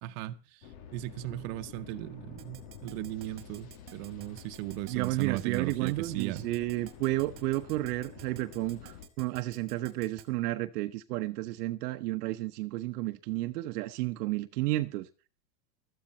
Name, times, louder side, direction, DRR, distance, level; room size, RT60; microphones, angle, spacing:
voice 1, 0.0-6.5, right 17 dB, 50° right, 1.2 m, -37 dB
sound 1, 0.6-9.1, left 8 dB, 55° left, 2.8 m, -49 dB
Keyboard (musical), 2.4-10.3, right 12 dB, 25° right, 2.0 m, -50 dB
voice 2, 4.9-15.1, right 18 dB, 70° right, 1.1 m, -32 dB
16.0 x 13.5 x 4.3 m
supercardioid pair, 150°, 48 cm